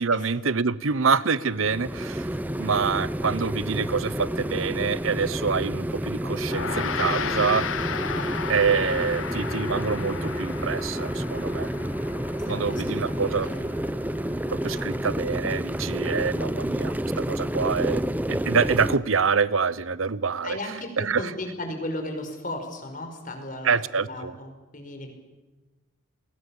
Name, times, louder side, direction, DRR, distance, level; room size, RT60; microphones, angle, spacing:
voice 1, 0.0-2.3 2.6-7.7 8.5-11.7 12.5-13.5 14.5-18.0 18.3-20.6 21.0-21.2 23.6-24.3, right 5 dB, 80° right, 0.9 m, -26 dB
sound 1, 1.5-19.0, right 1 dB, 10° right, 0.7 m, -29 dB
Gong, 6.4-16.0, left 6 dB, 75° left, 1.1 m, -35 dB
voice 2, 8.0-8.4 12.4-13.7 14.3-15.0 20.4-25.1, left 1 dB, 40° left, 5.0 m, -36 dB
30.0 x 21.0 x 7.2 m
head